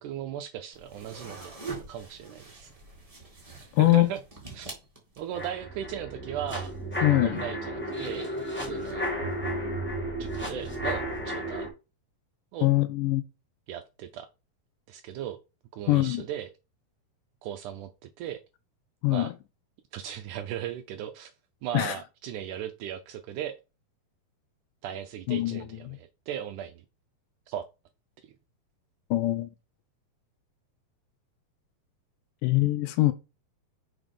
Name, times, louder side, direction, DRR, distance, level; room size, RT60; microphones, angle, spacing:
voice 1, 0.0-1.6 1.9-2.7 3.6-4.2 4.5-4.8 5.2-8.3 8.6-9.1 10.2-11.7 12.5-12.7 13.7-14.3 14.9-15.4 15.7-16.5 17.4-18.4 19.1-19.3 19.9-21.3 21.6-23.6 24.8-26.8 27.5-27.6 28.2-28.3, right 10 dB, 80° right, 1.8 m, -37 dB
sound 1, 0.7-5.5, right 4 dB, 25° right, 0.8 m, -44 dB
voice 2, 3.7-4.1 7.0-7.4 12.6-13.2 15.9-16.2 19.0-19.3 21.7-22.0 25.3-26.0 29.1-29.5 32.4-33.1, left 18 dB, 80° left, 2.0 m, -23 dB
sound 2, 5.3-11.7, right 1 dB, 10° left, 0.7 m, -33 dB
6.0 x 4.4 x 5.2 m
omnidirectional pair, 4.1 m